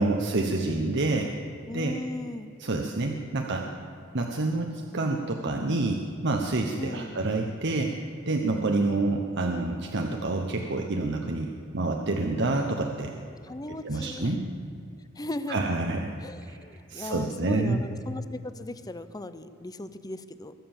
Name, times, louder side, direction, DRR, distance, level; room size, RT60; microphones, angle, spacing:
voice 1, 0.0-1.3 1.7-1.9 2.6-3.7 4.1-7.9 8.3-13.1 13.8-14.4 15.5-16.1 16.5-16.6 16.9-17.8, right 2 dB, 60° right, 2 dB, 1.0 m, -28 dB
voice 2, 1.7-2.5 6.8-7.2 13.4-14.3 15.2-15.7 16.2-20.5, left 2 dB, 20° left, 12 dB, 0.6 m, -37 dB
22.5 x 7.6 x 7.2 m, 2.4 s
head